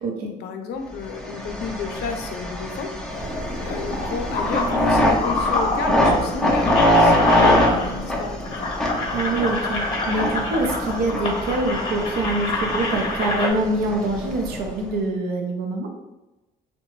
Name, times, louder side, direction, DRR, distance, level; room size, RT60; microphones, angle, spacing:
voice 1, 0.2-2.9 3.2-3.3 3.6-8.6, left 5 dB, 75° left, 5 dB, 0.4 m, -32 dB
sound 1, 1.0-14.9, left 1 dB, 5° left, 0.5 m, -24 dB
sound 2, 3.1-8.1 8.4-13.5, left 2 dB, 35° left, 0.8 m, -27 dB
sound 3, 3.2-10.9 11.2-11.3, equal, 40° right, 0.8 m, -36 dB
voice 2, 9.1-15.9, right 2 dB, 70° right, 3 dB, 0.5 m, -25 dB
2.7 x 2.2 x 2.9 m, 1.0 s
cardioid pair, 110°, 17 cm